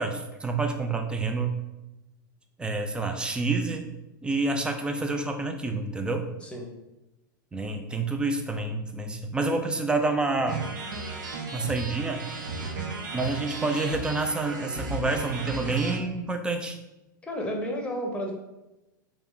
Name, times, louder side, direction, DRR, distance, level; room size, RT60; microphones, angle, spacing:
voice 1, 0.0-1.5 2.6-3.9 4.2-6.2 7.5-10.6 11.5-12.2 13.1-16.8, right 3 dB, 10° right, 5 dB, 0.4 m, -28 dB
sound 1, 10.5-16.0, right 3 dB, 70° right, 0.7 m, -35 dB
voice 2, 17.2-18.3, equal, 10° left, 1 dB, 0.8 m, -31 dB
3.3 x 3.0 x 3.7 m, 0.97 s
figure-of-eight pair, 95°, 11 cm